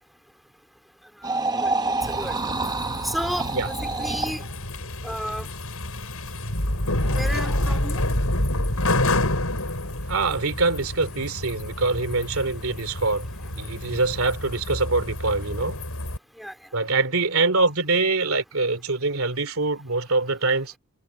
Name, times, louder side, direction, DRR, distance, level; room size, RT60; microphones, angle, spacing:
sound 1, 1.2-4.4 7.0-7.8, right 3 dB, 20° right, 0.8 m, -28 dB
sound 2, 2.0-16.2, left 1 dB, 80° left, 6.9 m, -28 dB
voice 1, 3.0-4.4 5.0-5.5 7.2-8.0 16.4-16.5, equal, ahead, 2.8 m, -32 dB
voice 2, 10.1-15.8 16.7-20.7, right 3 dB, 70° right, 2.6 m, -24 dB
head